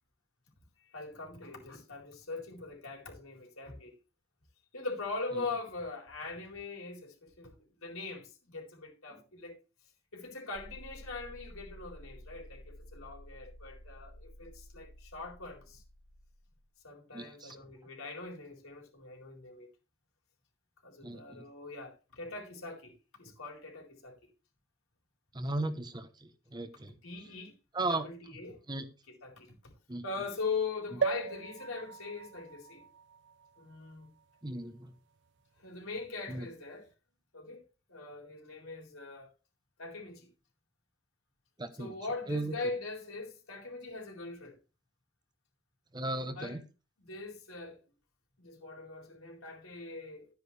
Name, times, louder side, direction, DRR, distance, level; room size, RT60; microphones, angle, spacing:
voice 1, 0.8-3.9 4.7-9.6 10.1-15.8 16.8-19.7 20.8-24.2 27.0-27.5 27.9-28.6 29.1-29.5 30.0-32.8 33.6-34.1 35.6-36.9 37.3-37.6 37.9-39.3 39.8-40.3 41.8-44.6 46.3-46.6 47.0-47.8 48.4-50.3, left 3 dB, 80° left, 4.2 m, -41 dB
sound 1, 10.5-16.7, equal, 25° left, 2.9 m, -52 dB
voice 2, 17.1-17.6 21.0-21.4 25.3-26.9 27.7-28.0 28.7-28.9 29.9-30.0 30.9-31.0 34.4-34.9 36.3-36.5 41.6-41.9 42.3-42.5 45.9-46.6, right 2 dB, 20° right, 0.9 m, -36 dB
sound 2, 31.0-34.7 35.3-35.4 35.6-35.7, right 5 dB, 55° right, 0.5 m, -38 dB
12.0 x 9.5 x 3.3 m
head